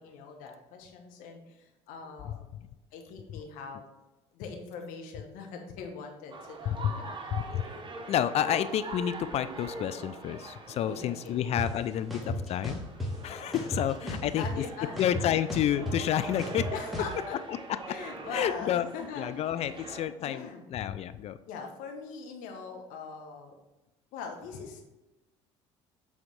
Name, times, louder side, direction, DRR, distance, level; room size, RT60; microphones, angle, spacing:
voice 1, 0.0-2.4 2.9-3.9 4.3-7.2 10.8-11.4 13.5-15.0 16.7-17.3 17.9-19.8 20.2-20.7 21.5-23.5 24.1-24.8, left 5 dB, 65° left, 3 dB, 1.2 m, -42 dB
voice 2, 2.2-2.7 6.7-7.0 7.3-7.6 8.1-12.8 13.2-14.6 15.0-16.7 17.5-17.6 18.3-18.9 19.2-21.4, left 10 dB, 45° left, 12 dB, 0.4 m, -30 dB
sound 1, 6.3-20.1, right 3 dB, 30° right, 1.0 m, -43 dB
sound 2, 11.6-11.7 12.1-13.1 13.5-14.7 15.0-17.1, left 1 dB, ahead, 1.8 m, -34 dB
7.6 x 3.6 x 4.7 m, 1.0 s
hypercardioid pair, 60°, 15 cm